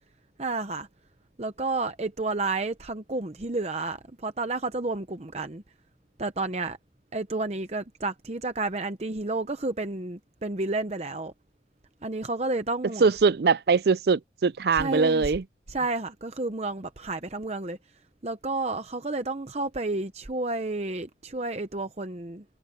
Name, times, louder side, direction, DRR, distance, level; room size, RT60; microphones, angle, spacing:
voice 1, 0.4-0.9 1.4-5.6 6.2-6.8 7.1-11.3 12.0-13.1 14.7-15.3 15.7-17.8 18.2-22.4, right 2 dB, 35° right, 0.8 m, -31 dB
voice 2, 13.0-15.4, right 4 dB, 60° right, 0.4 m, -22 dB
head